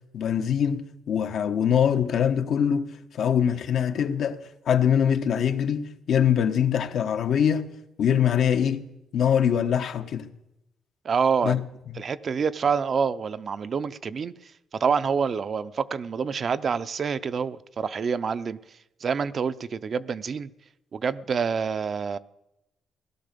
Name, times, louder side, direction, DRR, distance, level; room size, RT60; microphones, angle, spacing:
voice 1, 0.1-4.4 4.7-7.7 8.0-8.8 9.1-10.3 11.4-11.6 11.9-12.0, left 8 dB, 70° left, 1.2 m, -23 dB
voice 2, 11.0-11.6 12.0-14.3 14.8-18.6 19.0-20.5 20.9-22.2, right 6 dB, 45° right, 0.6 m, -27 dB
17.5 x 12.0 x 6.8 m
cardioid pair, 90°, 0 cm